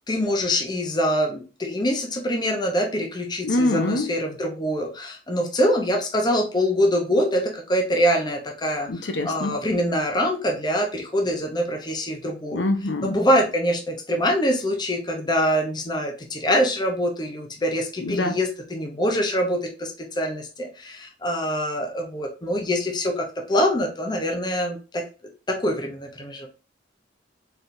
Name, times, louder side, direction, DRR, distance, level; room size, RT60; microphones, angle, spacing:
voice 1, 0.1-12.6 13.0-25.0 25.5-26.5, equal, 25° left, 0.8 m, -24 dB
voice 2, 3.4-4.1 8.9-9.5 12.5-13.2 18.1-18.3, left 2 dB, 70° left, 0.8 m, -24 dB
4.2 x 3.4 x 2.6 m
head